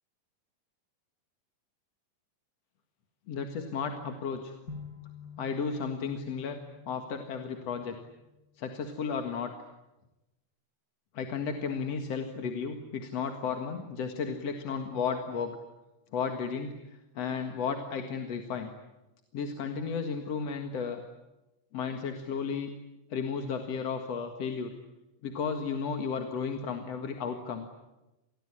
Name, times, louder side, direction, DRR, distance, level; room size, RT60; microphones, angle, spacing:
voice 1, 3.3-4.5 5.4-6.6 6.9-8.0 8.6-9.5 11.1-15.6 16.1-18.7 19.3-21.0 21.7-22.7 23.1-24.7 25.2-27.7, left 6 dB, 55° left, 5 dB, 2.6 m, -33 dB
sound 1, 4.7-8.7, left 6 dB, 30° left, 5.9 m, -49 dB
27.5 x 20.5 x 10.0 m, 0.99 s
omnidirectional pair, 3.9 m